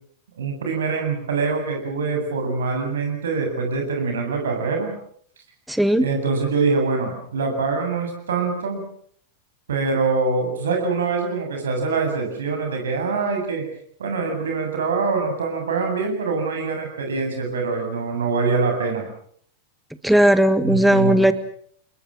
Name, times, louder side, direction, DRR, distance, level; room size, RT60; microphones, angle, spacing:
voice 1, 0.4-4.9 6.0-8.8 9.7-13.7 14.0-19.1 20.6-21.3, right 4 dB, 65° right, 4 dB, 7.9 m, -24 dB
voice 2, 5.7-6.1 20.0-21.3, right 1 dB, ahead, 12 dB, 1.8 m, -16 dB
29.5 x 21.0 x 6.5 m, 0.62 s
figure-of-eight pair, 90°, 0 cm